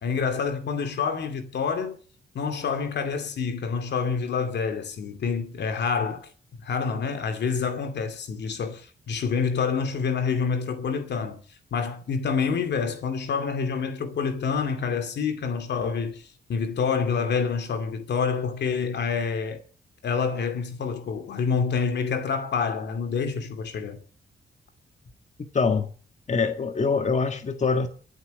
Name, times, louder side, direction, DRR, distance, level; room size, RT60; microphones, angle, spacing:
voice 1, 0.0-2.0 2.3-6.3 6.6-11.4 11.7-19.6 20.0-24.0, left 5 dB, 75° left, 2.5 m, -27 dB
voice 2, 25.5-25.9 26.3-27.9, left 4 dB, 40° left, 1.6 m, -24 dB
23.0 x 8.2 x 6.6 m
cardioid pair, 85°, 18 cm